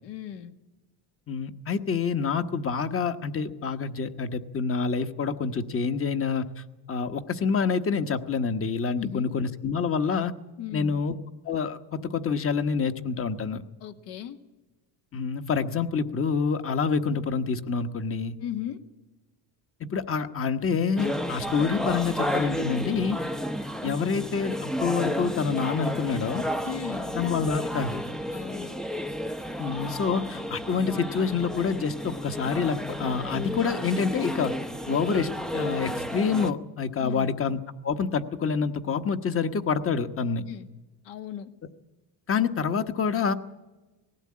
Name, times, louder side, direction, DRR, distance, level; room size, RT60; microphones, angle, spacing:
voice 1, 0.0-0.6 8.9-9.4 10.6-11.0 13.8-14.4 18.4-18.8 26.6-27.1 28.3-28.8 37.0-37.3 40.5-40.7 41.0-41.5, left 10 dB, 75° left, 7 dB, 1.7 m, -36 dB
voice 2, 1.3-6.4 6.9-10.3 10.7-11.1 11.4-13.6 15.1-18.4 19.8-23.2 23.8-26.4 27.1-28.0 29.6-34.5 34.9-40.4 42.3-43.3, left 5 dB, 30° left, 10 dB, 1.2 m, -27 dB
sound 1, 21.0-36.5, equal, ahead, 0.6 m, -32 dB
19.0 x 16.0 x 8.6 m, 1.1 s
cardioid pair, 120°, 42 cm